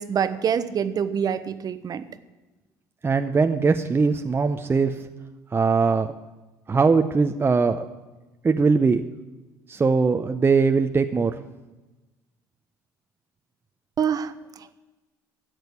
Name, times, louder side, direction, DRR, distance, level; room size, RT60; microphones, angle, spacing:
voice 1, 0.0-2.0 14.0-14.7, right 7 dB, 45° right, 12 dB, 1.1 m, -26 dB
voice 2, 3.0-5.0 5.5-6.1 6.7-7.8 8.4-9.0 9.7-11.4, right 4 dB, 25° right, 6 dB, 0.8 m, -21 dB
12.0 x 7.9 x 8.3 m, 1.1 s
hypercardioid pair, 65°, 9 cm